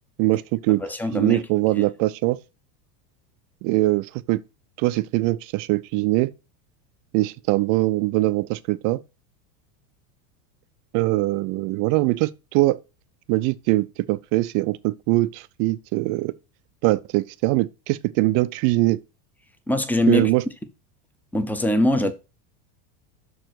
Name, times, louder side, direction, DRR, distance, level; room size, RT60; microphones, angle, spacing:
voice 1, 0.2-0.8 1.1-2.4 3.6-4.4 4.8-6.3 7.1-9.0 10.9-12.8 13.3-16.3 16.8-19.0 20.1-20.4, right 19 dB, 40° right, 0.5 m, -22 dB
voice 2, 0.8-1.4 1.8-1.9 19.7-20.3 21.3-22.1, left 1 dB, 5° left, 0.6 m, -22 dB
6.3 x 4.6 x 6.0 m
supercardioid pair, 135°, 48 cm